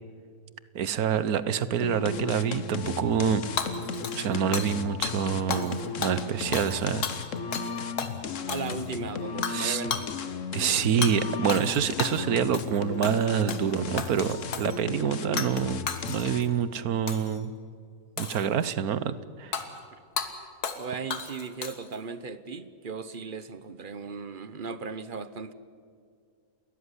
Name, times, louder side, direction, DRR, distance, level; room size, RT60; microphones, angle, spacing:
voice 1, 0.7-3.4 4.2-7.1 9.5-9.8 10.5-17.5 18.2-19.5, right 8 dB, 65° right, 1.3 m, -27 dB
sound 1, 1.8-16.6, left 5 dB, 55° left, 1.3 m, -35 dB
Hammer / Shatter, 3.6-4.8 5.0-5.2 5.5-5.8 6.0-7.7 8.0-8.1 8.5-9.0 9.4-9.6 9.9-10.1 11.0-11.2 11.5-12.2 12.5-12.8 13.0-13.7 14.0-14.8 15.4-15.6 15.9-16.5 17.1-17.4 18.2-18.7 19.5-19.7 20.2-20.3 20.6-20.8 21.1-22.0, left 6 dB, 70° left, 2.1 m, -33 dB
voice 2, 8.5-10.1 19.9-20.0 20.8-25.5, right 5 dB, 40° right, 0.9 m, -37 dB
30.0 x 13.5 x 9.8 m
omnidirectional pair, 1.7 m